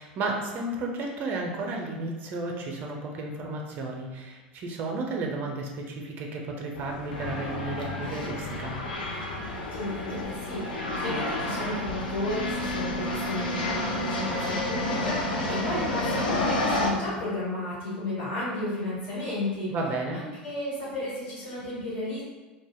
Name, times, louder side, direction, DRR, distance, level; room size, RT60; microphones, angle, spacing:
voice 1, 0.0-8.8 19.7-20.2, right 2 dB, 45° right, 0 dB, 0.5 m, -33 dB
sound 1, 6.7-16.9, left 1 dB, 80° left, 0.4 m, -30 dB
voice 2, 9.7-19.7 20.1-22.2, left 1 dB, 65° left, -9 dB, 1.1 m, -33 dB
2.2 x 2.0 x 3.4 m, 1.3 s
hypercardioid pair, 75°, 5 cm